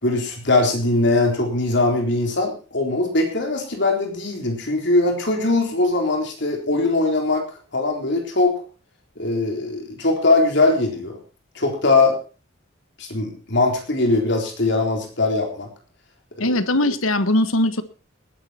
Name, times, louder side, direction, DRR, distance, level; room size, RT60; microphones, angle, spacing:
voice 1, 0.0-7.5 7.7-8.6 9.2-11.2 11.5-12.2 13.0-15.7 16.4-16.5, left 2 dB, 60° left, 2 dB, 3.9 m, -21 dB
voice 2, 16.4-17.8, left 1 dB, 90° left, 12 dB, 1.4 m, -20 dB
19.0 x 10.5 x 4.4 m, 0.35 s
head